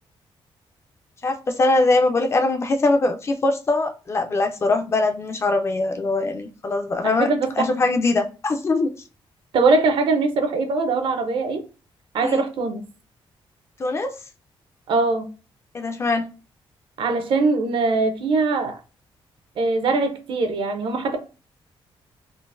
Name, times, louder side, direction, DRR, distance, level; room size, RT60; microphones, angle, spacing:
voice 1, 1.2-8.9 12.2-12.4 13.8-14.1 15.7-16.3, left 2 dB, 30° left, 0.4 m, -22 dB
voice 2, 7.0-7.7 9.5-11.7 12.1-12.8 14.9-15.3 17.0-18.8 19.6-21.2, right 3 dB, 60° right, 0.7 m, -21 dB
3.8 x 2.4 x 2.5 m
wide cardioid pair, 165°, 10 cm